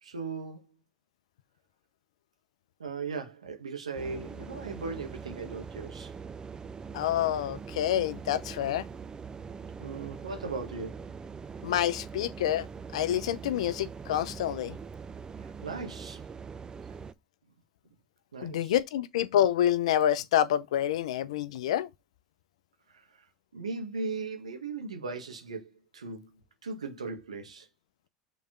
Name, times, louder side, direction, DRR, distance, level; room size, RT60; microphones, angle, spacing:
voice 1, 0.0-0.7 2.8-6.1 9.8-11.1 15.4-16.2 18.3-18.7 22.9-23.2 23.5-26.4 26.6-27.7, right 4 dB, 90° right, 1.6 m, -38 dB
sound 1, 4.0-17.1, right 5 dB, 25° right, 0.6 m, -42 dB
voice 2, 6.9-8.8 11.6-12.7 12.9-14.8 18.4-21.9, left 11 dB, 75° left, 0.6 m, -27 dB
6.6 x 4.1 x 3.7 m
hypercardioid pair, 85°, 3 cm